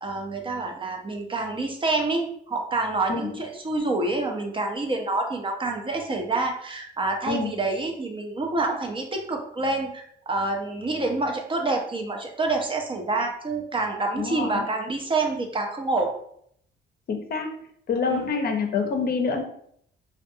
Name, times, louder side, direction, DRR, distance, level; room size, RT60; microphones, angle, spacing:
voice 1, 0.0-16.1 18.1-18.3, right 2 dB, 25° right, 2 dB, 0.5 m, -27 dB
voice 2, 14.2-14.6 17.1-17.5 17.9-19.4, left 5 dB, 50° left, 4 dB, 0.5 m, -26 dB
2.5 x 2.2 x 2.6 m, 0.67 s
cardioid pair, 90°, 20 cm